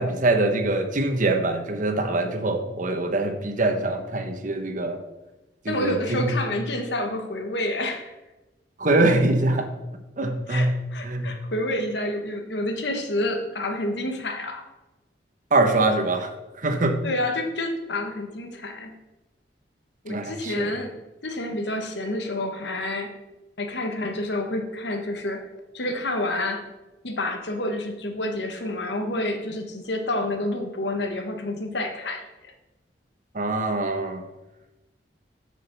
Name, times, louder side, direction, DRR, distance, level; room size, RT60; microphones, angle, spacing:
voice 1, 0.0-5.0 5.6-6.3 8.8-9.7 10.2-10.7 11.0-11.3 15.5-16.3 16.6-17.0 20.1-20.7 33.3-34.2, right 2 dB, 45° right, 5 dB, 1.1 m, -23 dB
voice 2, 5.7-8.1 10.5-14.7 17.0-18.9 20.0-20.9 21.2-23.1 23.6-25.4 25.7-26.7 27.0-32.5, left 1 dB, 70° left, 5 dB, 1.3 m, -29 dB
8.2 x 5.1 x 6.9 m, 1.0 s
head